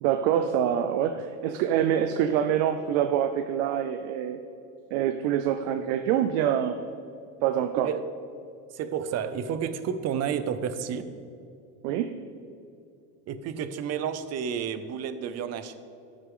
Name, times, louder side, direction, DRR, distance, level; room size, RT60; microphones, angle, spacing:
voice 1, 0.0-4.4 4.9-6.8 7.4-7.9 11.8-12.1, right 9 dB, 80° right, 8 dB, 0.6 m, -25 dB
voice 2, 8.7-11.1 13.3-15.8, right 7 dB, 45° right, 11 dB, 0.7 m, -31 dB
14.0 x 6.6 x 3.8 m, 2.7 s
supercardioid pair, 125°, 37 cm